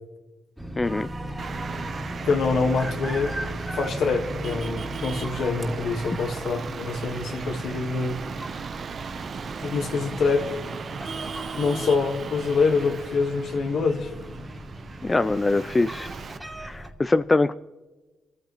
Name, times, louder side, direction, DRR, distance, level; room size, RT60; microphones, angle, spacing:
sound 1, 0.6-16.9, right 1 dB, 5° right, 2.3 m, -37 dB
voice 1, 0.8-1.1 15.0-16.1 16.6-17.5, left 2 dB, 25° left, 0.4 m, -23 dB
sound 2, 0.8-6.3, right 2 dB, 25° right, 2.5 m, -43 dB
Traffic noise roadway noise, 1.4-16.4, right 5 dB, 55° right, 0.8 m, -37 dB
voice 2, 2.2-3.4 3.7-8.2 9.6-10.5 11.5-14.1, left 4 dB, 70° left, 1.5 m, -25 dB
24.5 x 14.0 x 3.0 m
supercardioid pair, 65°, 0 cm